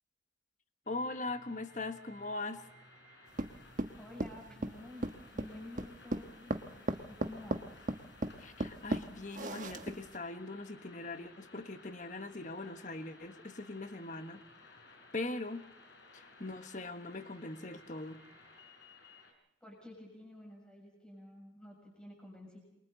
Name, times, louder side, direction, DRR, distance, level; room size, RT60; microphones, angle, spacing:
sound 1, 0.8-19.3, left 2 dB, 70° left, 4.9 m, -58 dB
voice 1, 0.9-2.6 8.4-15.7 16.1-18.2, left 2 dB, 45° left, 9 dB, 1.4 m, -41 dB
sound 2, 3.4-10.2, right 1 dB, 45° right, 1.2 m, -37 dB
voice 2, 4.0-5.1 5.3-7.6 19.6-22.6, left 1 dB, 5° left, -2 dB, 7.0 m, -51 dB
28.5 x 23.5 x 4.1 m, 0.82 s
head